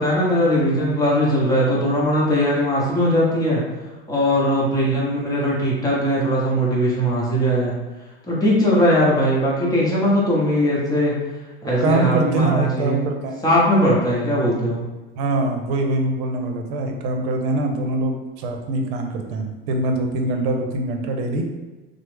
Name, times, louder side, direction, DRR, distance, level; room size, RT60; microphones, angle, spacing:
voice 1, 0.0-3.6 4.1-7.7 8.2-11.1 11.6-13.0 13.4-14.8 19.2-19.3, equal, 10° left, -6 dB, 0.8 m, -19 dB
voice 2, 11.8-13.4 15.2-21.4, right 2 dB, 75° right, 4 dB, 0.6 m, -23 dB
3.2 x 2.0 x 3.2 m, 1.2 s
supercardioid pair, 130°, 32 cm